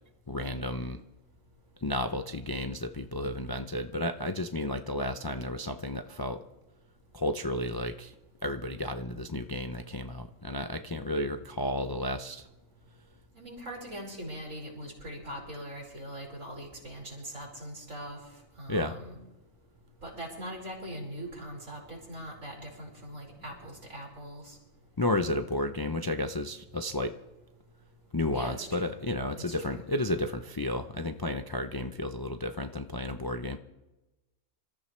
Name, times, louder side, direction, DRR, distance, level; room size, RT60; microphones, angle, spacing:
voice 1, 0.3-1.0 1.8-6.4 7.1-8.1 8.4-12.5 18.7-18.9 25.0-27.1 28.1-33.6, left 1 dB, 30° left, 7 dB, 0.4 m, -32 dB
voice 2, 13.3-19.2 20.0-24.6 28.3-28.9 29.4-29.8, equal, 80° right, -2 dB, 5.4 m, -41 dB
27.0 x 14.0 x 3.3 m, 1.1 s
omnidirectional pair, 1.3 m